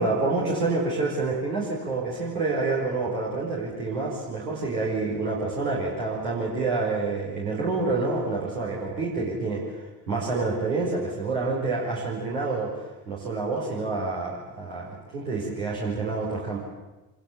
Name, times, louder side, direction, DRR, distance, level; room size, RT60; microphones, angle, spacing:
voice 1, 0.0-16.6, right 3 dB, 75° right, -5 dB, 5.2 m, -28 dB
27.0 x 21.0 x 8.6 m, 1.1 s
figure-of-eight pair, 50°, 48 cm